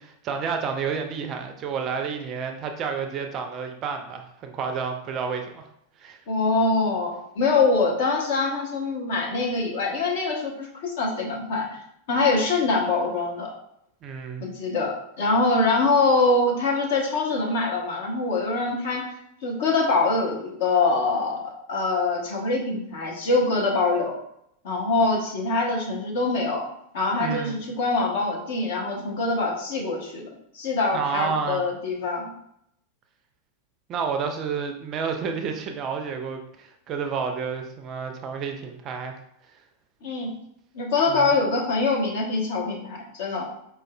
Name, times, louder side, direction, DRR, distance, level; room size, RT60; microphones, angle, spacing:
voice 1, 0.0-5.7 6.0-6.2 14.0-14.5 27.2-27.6 30.9-31.6 33.9-39.2 41.1-41.3, right 6 dB, 30° right, 5 dB, 0.4 m, -30 dB
voice 2, 6.3-11.7 12.1-13.5 14.4-19.1 19.4-24.1 24.6-26.6 26.9-30.3 30.5-32.3 40.0-40.3 40.7-43.5, left 3 dB, 55° left, -1 dB, 0.8 m, -24 dB
4.7 x 2.3 x 2.2 m, 0.76 s
figure-of-eight pair, 90°, 0 cm